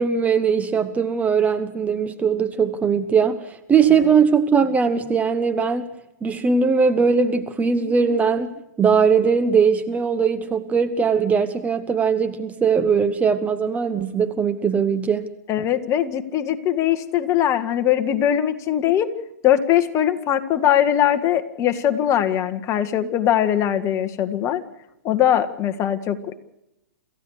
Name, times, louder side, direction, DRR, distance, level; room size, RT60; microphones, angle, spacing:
voice 1, 0.0-5.8 6.2-15.3, right 6 dB, 15° right, 10 dB, 1.2 m, -20 dB
voice 2, 15.5-19.1 19.4-24.6 25.0-26.4, left 10 dB, 30° left, 9 dB, 1.8 m, -21 dB
28.0 x 15.0 x 6.6 m, 0.88 s
hypercardioid pair, 130°, 10 cm